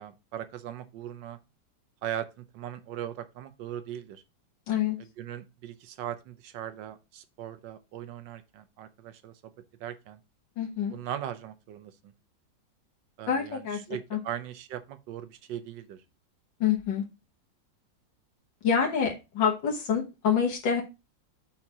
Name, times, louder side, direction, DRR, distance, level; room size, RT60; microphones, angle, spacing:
voice 1, 0.0-1.4 2.0-4.2 5.0-9.5 9.8-10.2 10.9-12.1 13.2-16.0, right 10 dB, 80° right, 1.5 m, -39 dB
voice 2, 4.7-5.0 10.6-10.9 13.3-13.8 14.1-14.2 16.6-17.0 18.6-20.8, left 7 dB, 80° left, 2.0 m, -26 dB
5.6 x 4.5 x 4.7 m
omnidirectional pair, 2.0 m